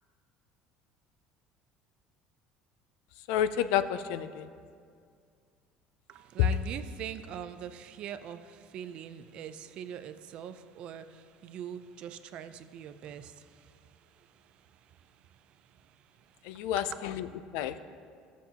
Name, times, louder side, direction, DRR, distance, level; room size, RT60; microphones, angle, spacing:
voice 1, 3.3-4.5 16.4-17.3 17.5-17.7, left 10 dB, 85° left, 12 dB, 0.4 m, -30 dB
voice 2, 6.1-13.4 16.8-17.0, right 9 dB, 50° right, 11 dB, 0.4 m, -42 dB
14.5 x 7.1 x 2.8 m, 2.2 s
cardioid pair, 140°, 2 cm